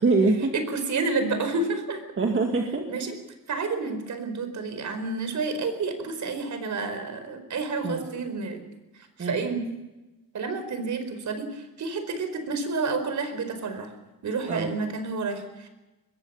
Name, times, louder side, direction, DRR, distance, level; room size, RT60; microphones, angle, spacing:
voice 1, 0.0-0.5 2.2-2.8 7.8-8.0 9.2-9.5 14.5-14.7, right 3 dB, 35° right, 2 dB, 2.3 m, -24 dB
voice 2, 0.5-2.0 2.9-3.2 3.5-8.6 9.2-9.6 10.3-13.9 14.2-15.7, right 4 dB, 55° right, 8 dB, 4.7 m, -30 dB
24.0 x 21.5 x 5.7 m, 1.1 s
wide cardioid pair, 160°, 35 cm